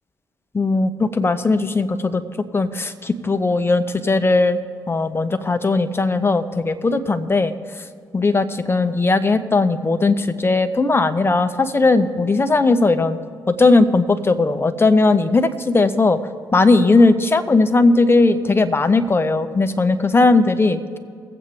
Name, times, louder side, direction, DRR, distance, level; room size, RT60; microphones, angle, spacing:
voice 1, 0.5-2.2 2.5-4.6 4.9-7.5 8.1-13.2 13.5-16.2 16.5-21.0, left 3 dB, 25° left, 10 dB, 1.0 m, -17 dB
21.5 x 8.1 x 3.3 m, 2.2 s
hypercardioid pair, 45°, 9 cm